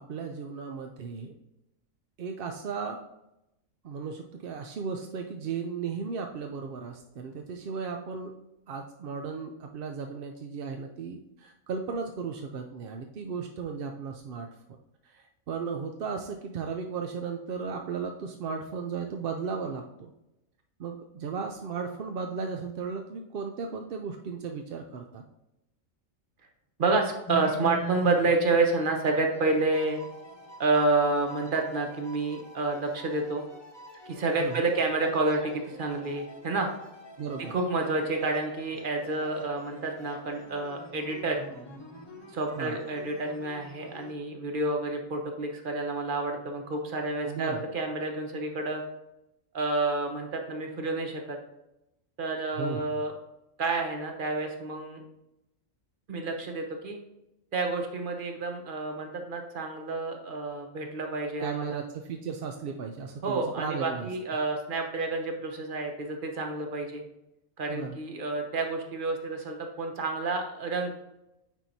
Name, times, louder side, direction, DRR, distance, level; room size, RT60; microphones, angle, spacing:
voice 1, 0.0-1.3 2.2-3.0 3.8-8.3 8.7-14.5 15.0-20.1 20.8-25.2 34.4-34.6 37.2-37.6 42.6-42.8 47.2-47.6 52.5-52.8 61.4-64.1 67.7-68.0, right 5 dB, 60° right, 4 dB, 0.6 m, -35 dB
voice 2, 26.8-30.0 30.6-33.4 34.1-36.7 37.4-41.4 42.3-48.8 49.5-51.4 52.2-53.1 53.6-55.0 56.1-57.0 57.5-61.8 63.2-67.0 67.6-70.9, right 3 dB, 45° right, 3 dB, 1.0 m, -29 dB
sound 1, 27.3-44.1, right 2 dB, 20° left, 1.0 m, -44 dB
9.1 x 4.5 x 2.7 m, 0.89 s
omnidirectional pair, 1.4 m